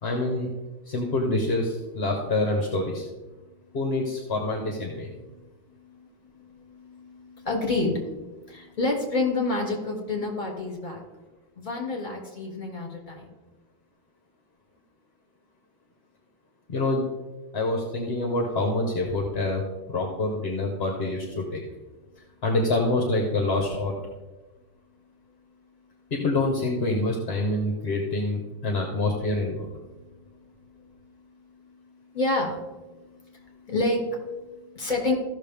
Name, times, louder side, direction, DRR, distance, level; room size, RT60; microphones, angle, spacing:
voice 1, 0.0-0.5 0.8-3.1 3.7-5.1 16.7-17.1 17.5-19.6 19.9-21.6 22.4-23.9 26.1-29.7, left 2 dB, 40° left, 1 dB, 1.1 m, -26 dB
voice 2, 5.7-6.1 6.3-11.0 11.6-13.3 29.9-35.1, left 2 dB, 25° left, -1 dB, 2.5 m, -30 dB
15.0 x 6.4 x 3.5 m, 1.2 s
omnidirectional pair, 2.1 m